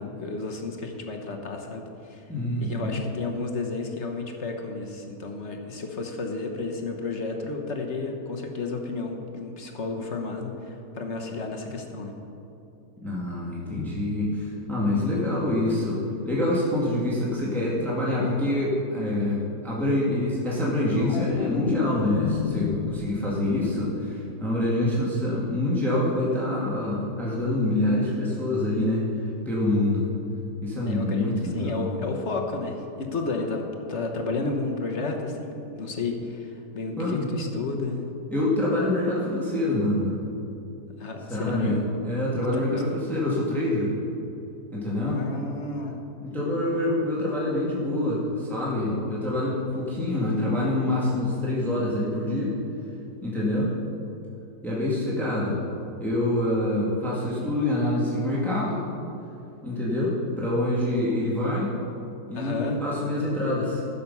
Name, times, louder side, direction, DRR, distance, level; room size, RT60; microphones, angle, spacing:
voice 1, 0.0-2.2 2.6-12.1 30.9-33.6 33.9-38.1 41.0-41.8 42.5-42.6 45.1-46.0 46.3-46.6 62.3-62.8, left 3 dB, 45° left, 2 dB, 1.2 m, -32 dB
voice 2, 2.3-3.0 13.0-29.0 29.5-30.0 30.6-31.9 37.0-37.3 38.3-40.1 41.3-41.8 42.0-43.9 44.7-45.2 46.2-52.6 53.2-53.7 54.6-55.6 56.0-58.8 59.6-61.7 62.3-63.8, left 1 dB, ahead, -6 dB, 1.9 m, -26 dB
sound 1, 20.5-23.7 24.0-24.4, left 6 dB, 70° left, 0.6 m, -31 dB
15.0 x 7.0 x 5.5 m, 2.8 s
omnidirectional pair, 1.8 m